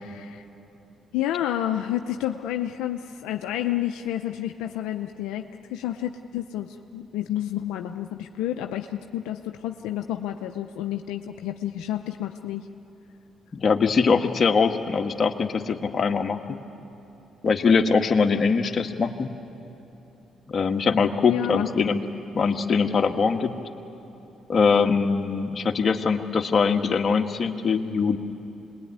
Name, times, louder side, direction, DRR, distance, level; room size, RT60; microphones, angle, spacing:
voice 1, 0.0-0.4 1.1-12.7 21.2-21.7, left 12 dB, 85° left, 5 dB, 0.7 m, -30 dB
voice 2, 13.5-16.6 17.4-19.3 20.5-22.0 22.3-23.5 24.5-28.2, left 5 dB, 50° left, 4 dB, 1.6 m, -22 dB
26.5 x 20.5 x 9.6 m, 2.9 s
supercardioid pair, 65°, 0 cm